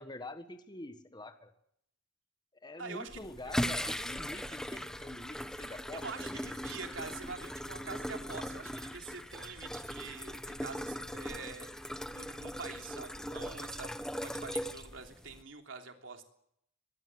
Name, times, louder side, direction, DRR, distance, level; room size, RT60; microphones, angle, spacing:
voice 1, 0.0-1.5 2.6-6.5, left 2 dB, 20° left, 9 dB, 1.5 m, -46 dB
voice 2, 2.8-3.2 3.4-3.5 5.9-11.7 12.1-13.9 14.2-16.2, right 4 dB, 75° right, 4 dB, 3.3 m, -45 dB
sound 1, 3.1-15.4, equal, 5° left, 1.2 m, -39 dB
22.5 x 22.0 x 8.0 m, 0.75 s
head